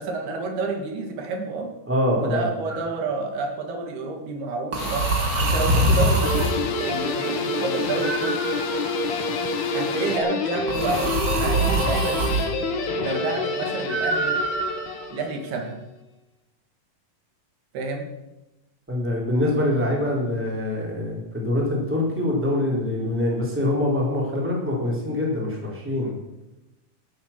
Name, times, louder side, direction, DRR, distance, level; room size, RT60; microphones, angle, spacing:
voice 1, 0.0-1.7 2.2-5.1 5.4-8.5 9.7-12.3 13.0-14.3 15.1-15.8 17.7-18.1, right 3 dB, 75° right, 3 dB, 3.9 m, -29 dB
voice 2, 1.9-2.5 18.9-26.1, left 1 dB, 5° right, -3 dB, 3.3 m, -24 dB
sound 1, 2.7-3.0 4.7-6.6 8.0-9.1 10.7-12.5 13.9-15.1, right 2 dB, 60° right, 1.1 m, -24 dB
sound 2, 4.8-10.2, left 6 dB, 65° left, 2.6 m, -35 dB
Guitar, 6.2-15.6, left 3 dB, 85° left, 3.6 m, -27 dB
13.5 x 8.1 x 7.3 m, 0.99 s
omnidirectional pair, 4.5 m